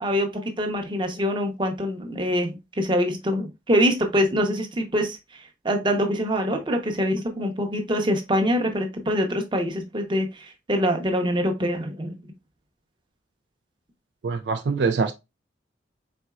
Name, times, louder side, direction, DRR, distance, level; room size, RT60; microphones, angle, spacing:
voice 1, 0.6-5.2 5.6-12.1, equal, 25° right, 0.8 m, -24 dB
voice 2, 14.2-15.1, right 4 dB, 65° right, 0.4 m, -24 dB
4.3 x 3.9 x 2.3 m
head